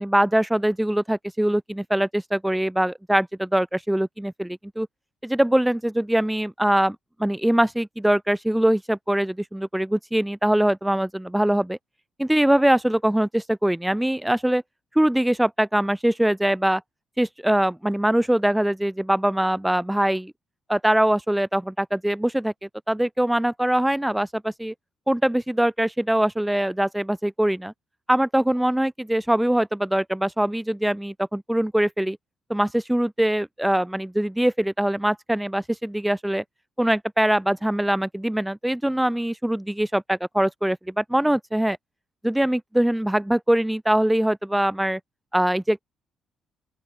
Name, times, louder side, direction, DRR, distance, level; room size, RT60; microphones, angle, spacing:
voice 1, 0.0-4.9 5.2-11.8 12.2-14.6 14.9-16.8 17.2-20.3 20.7-22.5 22.9-24.7 25.1-27.7 28.1-32.2 32.5-36.4 36.8-41.8 42.2-45.0 45.3-45.8, right 1 dB, 5° right, 3.0 m, -22 dB
open air
cardioid pair, 160°, 0 cm